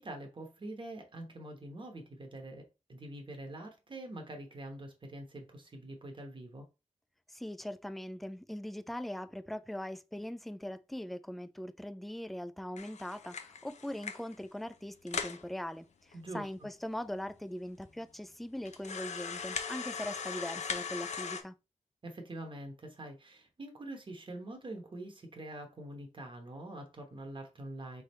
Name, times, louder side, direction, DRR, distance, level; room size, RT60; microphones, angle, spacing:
voice 1, 0.0-6.7 16.1-16.5 22.0-28.0, right 1 dB, 40° right, 1.0 m, -45 dB
voice 2, 7.3-21.6, left 1 dB, ahead, 0.3 m, -41 dB
sound 1, 12.8-14.4 14.7-14.8 15.1-15.4 16.1-16.2 16.5-16.6 17.2-17.3 17.8-17.9 18.7-21.4, left 6 dB, 65° left, 0.6 m, -39 dB
3.5 x 3.4 x 4.2 m
wide cardioid pair, 110°, 13 cm